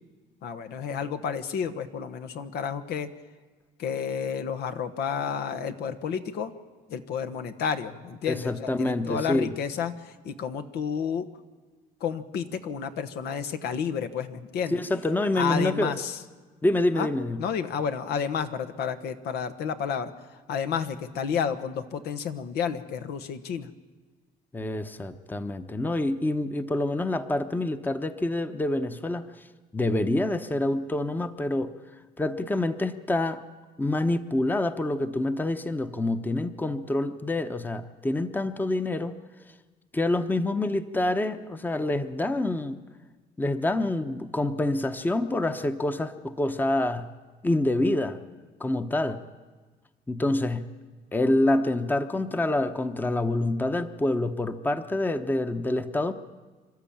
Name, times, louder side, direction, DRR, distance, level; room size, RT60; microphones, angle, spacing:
voice 1, 0.4-3.1 3.8-6.5 6.9-11.3 12.0-14.8 15.4-16.2 16.9-17.1 17.4-20.1 20.5-23.7, left 7 dB, 75° left, 8 dB, 1.3 m, -31 dB
voice 2, 8.3-9.6 14.7-16.0 16.6-17.4 24.5-29.2 29.7-31.8 32.2-33.4 33.8-39.2 39.9-42.8 43.4-47.1 47.4-48.2 48.6-49.2 50.1-50.7 51.1-56.1, left 2 dB, 10° left, 10 dB, 0.9 m, -27 dB
27.0 x 12.5 x 8.8 m, 1.4 s
cardioid pair, 110°, 17 cm